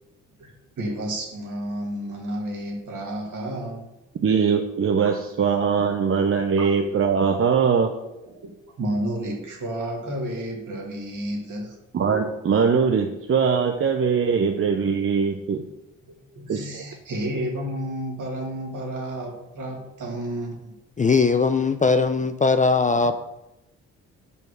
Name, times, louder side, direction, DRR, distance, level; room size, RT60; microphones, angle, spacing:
voice 1, 0.4-3.8 6.6-6.7 7.5-7.7 8.0-8.5 8.8-11.8 16.0-20.8, right 1 dB, 60° right, 2.2 m, -31 dB
voice 2, 4.2-7.9 11.9-15.6 16.5-16.8, right 6 dB, 35° right, 0.7 m, -21 dB
voice 3, 21.0-23.2, left 4 dB, 20° left, 0.5 m, -20 dB
5.4 x 4.5 x 6.2 m
hypercardioid pair, 45°, 36 cm